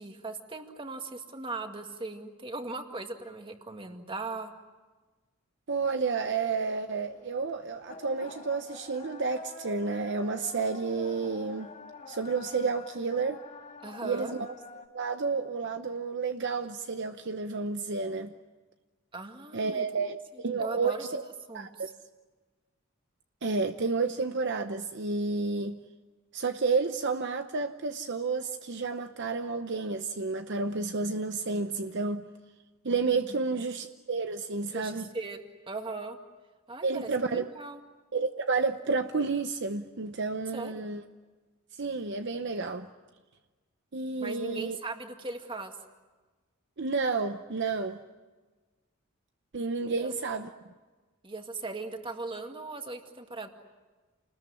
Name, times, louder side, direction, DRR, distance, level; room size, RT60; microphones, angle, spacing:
voice 1, 0.0-4.5 13.8-14.3 19.1-19.9 20.3-21.0 21.5-21.9 33.3-33.4 34.7-36.2 36.7-37.8 40.5-40.8 44.2-45.8 50.0-50.1 51.2-53.5, right 3 dB, 25° right, 2.1 m, -39 dB
voice 2, 5.7-11.7 12.1-13.4 14.0-14.5 14.9-18.3 19.5-21.2 21.5-21.9 23.4-25.8 26.3-32.3 32.8-35.1 36.8-37.4 38.1-41.0 41.8-42.9 43.9-44.8 46.8-48.0 49.5-50.5, right 4 dB, 55° right, 0.9 m, -31 dB
sound 1, 6.3-14.9, left 3 dB, 35° left, 2.0 m, -48 dB
29.0 x 20.5 x 9.8 m
head